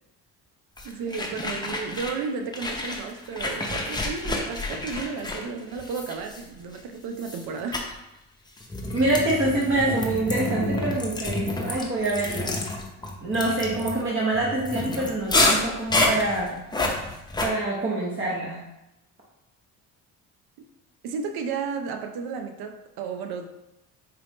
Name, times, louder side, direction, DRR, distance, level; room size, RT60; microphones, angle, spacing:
sound 1, 0.8-2.3 2.5-6.8 7.2-7.5 7.7-7.9 8.6-17.5, left 2 dB, 10° left, 0.7 m, -28 dB
voice 1, 0.8-7.9 20.6-20.7 21.0-23.5, right 5 dB, 75° right, 5 dB, 0.6 m, -33 dB
voice 2, 8.9-12.6 13.2-16.6 17.4-18.6, right 2 dB, 30° right, -4 dB, 0.9 m, -26 dB
4.4 x 2.5 x 3.5 m, 0.91 s
supercardioid pair, 80°, 37 cm